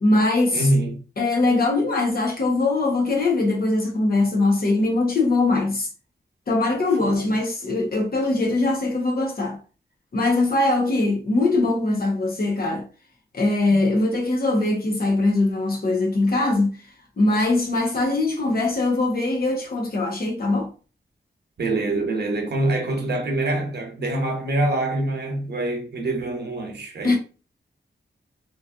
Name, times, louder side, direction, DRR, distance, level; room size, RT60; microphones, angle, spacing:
voice 1, 0.0-0.7 1.2-5.9 6.5-9.6 10.1-12.8 13.3-16.8 17.2-20.7 27.0-27.2, left 2 dB, 55° left, 0.9 m, -21 dB
voice 2, 0.5-1.0 7.0-7.3 21.6-27.2, right 2 dB, 65° right, 0.8 m, -25 dB
3.1 x 2.6 x 2.3 m
wide cardioid pair, 130°, 19 cm